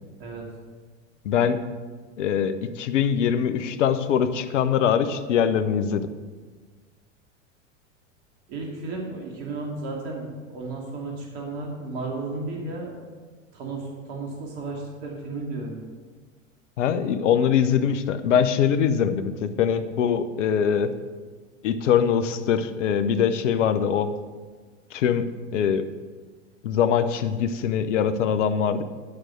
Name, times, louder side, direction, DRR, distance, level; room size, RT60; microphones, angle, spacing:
voice 1, 1.2-1.6 2.2-6.1 16.8-20.9 21.6-24.1 24.9-25.8 26.6-28.8, left 8 dB, 70° left, 11 dB, 0.9 m, -23 dB
voice 2, 8.5-13.0 13.5-15.8, right 3 dB, 60° right, -1 dB, 2.7 m, -33 dB
11.5 x 6.4 x 6.2 m, 1.4 s
hypercardioid pair, 95°, 37 cm